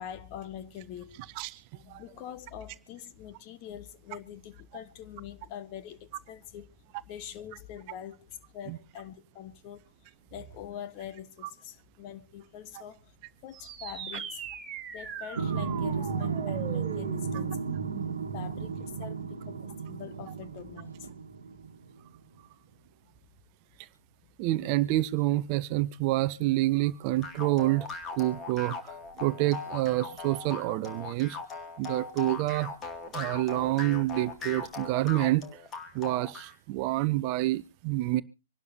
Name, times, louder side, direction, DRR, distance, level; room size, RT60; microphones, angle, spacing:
voice 1, 0.0-1.2 1.7-6.7 7.1-9.8 10.3-13.1 13.4-14.4 14.9-17.6 18.3-21.1, left 9 dB, 35° left, 1.4 m, -44 dB
sound 1, 13.5-18.5, right 7 dB, 20° right, 3.4 m, -41 dB
sound 2, 15.4-21.9, right 5 dB, 70° right, 1.4 m, -34 dB
voice 2, 24.4-31.4 31.8-32.7 33.1-35.6 35.9-38.2, right 17 dB, 35° right, 0.7 m, -28 dB
sound 3, 27.2-36.5, left 4 dB, 20° left, 2.4 m, -39 dB
26.0 x 12.0 x 2.8 m
figure-of-eight pair, 115°, 0 cm